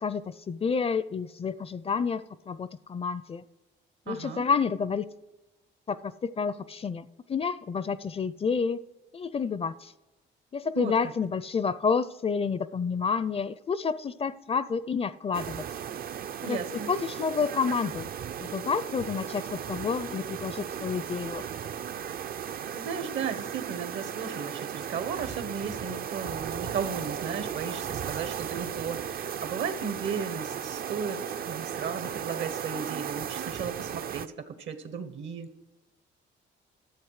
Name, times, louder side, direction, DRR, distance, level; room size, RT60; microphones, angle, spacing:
voice 1, 0.0-3.4 4.1-5.1 5.9-8.8 9.1-9.9 10.5-15.7 16.4-18.1 18.4-21.5, left 5 dB, 30° left, 17 dB, 0.4 m, -29 dB
voice 2, 4.1-4.5 10.7-10.9 16.4-16.9 22.5-35.5, right 6 dB, 70° right, 11 dB, 1.2 m, -35 dB
sound 1, 15.3-34.3, right 8 dB, 50° right, 0.5 m, -36 dB
13.0 x 7.6 x 4.8 m, 1.1 s
cardioid pair, 90°, 20 cm